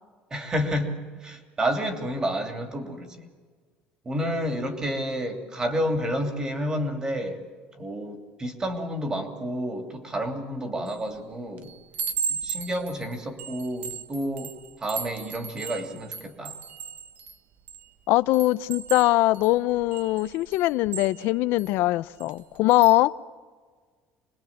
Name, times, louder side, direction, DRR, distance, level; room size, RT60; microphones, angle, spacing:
voice 1, 0.3-3.3 4.0-7.4 7.8-11.7 12.3-16.6, equal, 20° right, 2.9 m, -30 dB
Chime, 10.9-11.2 11.6-17.9 18.3-21.7 22.2-22.4 22.7-23.0, right 6 dB, 45° right, 1.2 m, -36 dB
voice 2, 18.1-23.1, left 17 dB, 75° left, 0.6 m, -22 dB
26.5 x 20.5 x 7.3 m
cardioid pair, 150°, 4 cm